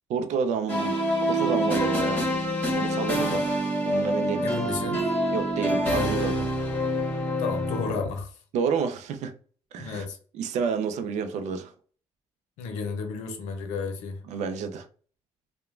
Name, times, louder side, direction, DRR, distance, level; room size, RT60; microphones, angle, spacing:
voice 1, 0.1-2.3 2.7-4.4 5.3-6.5 8.5-9.3 9.7-10.1 10.3-11.7 14.3-14.9, right 6 dB, 75° right, 0.5 m, -29 dB
sound 1, 0.7-8.1, equal, 15° left, 1.4 m, -26 dB
voice 2, 4.4-5.0 7.4-8.4 9.8-10.2 12.6-14.2, left 5 dB, 90° left, 0.6 m, -32 dB
2.9 x 2.2 x 2.4 m
supercardioid pair, 60°, 12 cm